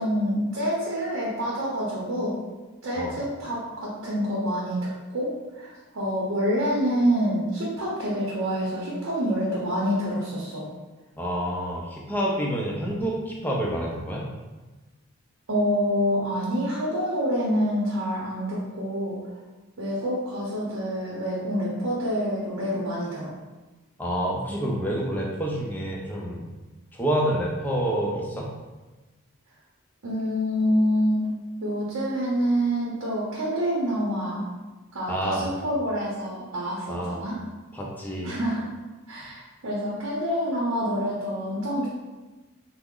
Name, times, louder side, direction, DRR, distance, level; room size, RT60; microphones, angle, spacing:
voice 1, 0.0-2.4 2.8-10.7 15.5-19.2 19.8-23.3 30.0-31.3 31.6-34.5 34.9-37.4 38.2-38.7 39.1-41.9, equal, 80° right, -6 dB, 0.7 m, -27 dB
voice 2, 11.2-14.3 24.0-26.5 26.9-28.5 35.1-35.5 36.9-37.2 37.7-38.3, right 1 dB, 10° left, -3 dB, 0.4 m, -28 dB
3.3 x 2.0 x 3.6 m, 1.2 s
head